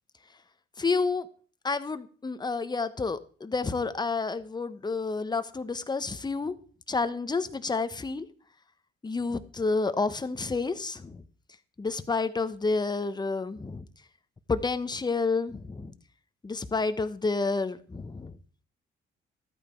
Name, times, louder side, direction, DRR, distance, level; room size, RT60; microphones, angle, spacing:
voice 1, 0.8-1.3 1.6-6.6 6.9-8.3 9.0-11.2 11.8-13.8 14.5-15.9 16.4-18.3, left 4 dB, 20° left, 1.1 m, -29 dB
13.0 x 8.8 x 4.5 m
cardioid pair, 90°, 20 cm